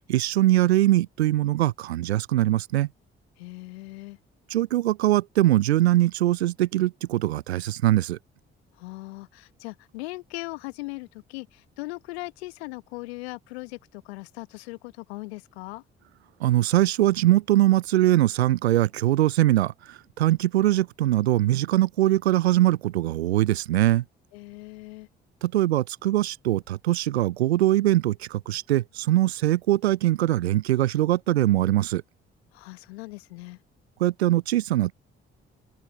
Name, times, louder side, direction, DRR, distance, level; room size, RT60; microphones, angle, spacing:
voice 1, 0.1-2.9 4.5-8.2 16.4-24.0 25.4-32.0 34.0-34.9, right 15 dB, 85° right, 0.5 m, -22 dB
voice 2, 3.4-4.2 8.7-15.8 24.3-25.1 32.5-33.6, left 22 dB, 80° left, 1.3 m, -39 dB
open air
figure-of-eight pair, 45°, 31 cm